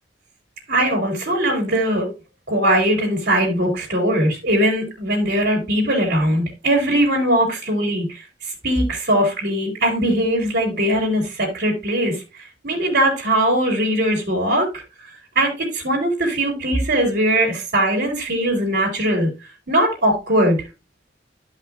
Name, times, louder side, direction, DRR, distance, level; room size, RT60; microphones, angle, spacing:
voice 1, 0.7-2.1 2.5-8.2 8.6-12.2 12.6-14.8 15.3-19.3 19.7-20.6, right 1 dB, 65° right, -1 dB, 3.1 m, -20 dB
13.0 x 5.5 x 2.4 m, 0.27 s
head